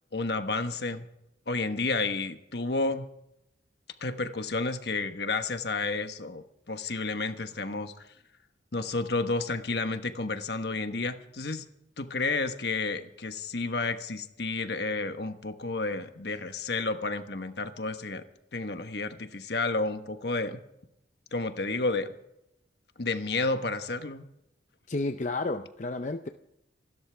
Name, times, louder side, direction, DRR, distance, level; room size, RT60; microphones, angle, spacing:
voice 1, 0.1-1.1 1.5-3.1 4.0-8.1 8.7-11.6 12.0-18.2 18.5-20.6 21.3-22.1 23.0-24.2, left 3 dB, 65° left, 8 dB, 1.3 m, -31 dB
voice 2, 24.9-26.3, left 2 dB, 40° left, 7 dB, 0.6 m, -31 dB
27.0 x 13.0 x 3.5 m, 0.83 s
head